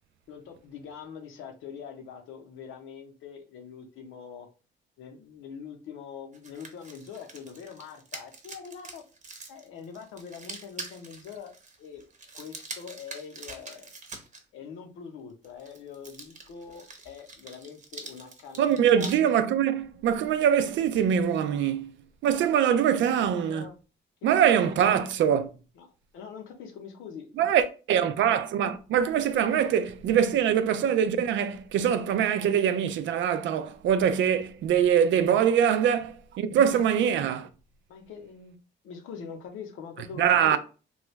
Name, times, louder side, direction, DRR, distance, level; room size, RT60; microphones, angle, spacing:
voice 1, 0.3-4.5 5.0-9.0 9.5-11.5 11.8-12.0 12.3-13.9 14.5-19.1 23.3-23.8 24.3-25.1 25.8-27.5 35.5-35.6 37.9-38.6 38.8-40.6, left 6 dB, 90° left, 0.8 m, -43 dB
sound 1, 6.3-14.4 15.4-19.2, right 3 dB, 35° right, 0.8 m, -44 dB
voice 2, 18.6-21.9 22.2-23.7 24.2-25.5 27.4-37.5 40.2-40.6, right 8 dB, 70° right, 0.4 m, -23 dB
3.0 x 2.3 x 3.1 m
cardioid pair, 90°, 20 cm